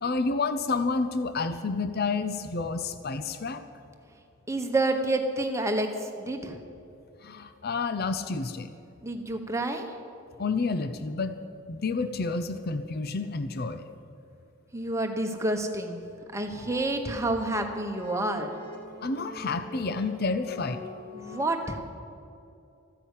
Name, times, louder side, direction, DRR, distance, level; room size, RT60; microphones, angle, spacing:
voice 1, 0.0-3.6 7.2-8.7 10.4-11.4 11.7-13.8 19.0-20.8, left 4 dB, 45° left, 10 dB, 0.6 m, -29 dB
voice 2, 4.5-6.6 9.0-9.9 14.7-16.0 16.3-18.5 21.1-21.8, right 2 dB, 15° right, 4 dB, 1.2 m, -29 dB
sound 1, 16.1-21.4, left 1 dB, 25° left, 2.9 m, -45 dB
14.5 x 10.0 x 8.3 m, 2.6 s
head